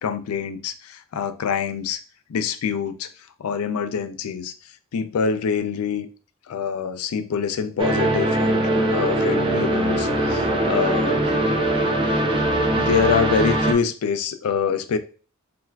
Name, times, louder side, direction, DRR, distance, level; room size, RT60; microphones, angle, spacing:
voice 1, 0.0-2.0 2.3-3.1 3.4-4.5 4.9-6.1 6.5-11.2 12.8-15.0, left 6 dB, 85° left, 10 dB, 0.4 m, -25 dB
sound 1, 7.8-13.7, right 1 dB, 25° right, 0.4 m, -21 dB
3.7 x 2.4 x 2.2 m, 0.37 s
head